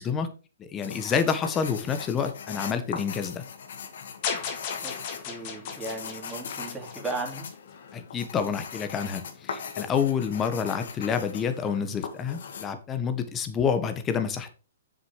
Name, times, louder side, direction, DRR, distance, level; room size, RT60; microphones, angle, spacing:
voice 1, 0.0-3.4 7.9-14.5, left 6 dB, 20° left, 9 dB, 1.4 m, -28 dB
sound 1, 0.8-12.7, left 6 dB, 65° left, 1.8 m, -40 dB
sound 2, 4.2-7.5, left 6 dB, 40° left, 2.7 m, -35 dB
voice 2, 5.2-7.5, right 2 dB, 10° right, 0 dB, 3.1 m, -36 dB
7.2 x 6.6 x 4.8 m, 0.34 s
hypercardioid pair, 130°, 0 cm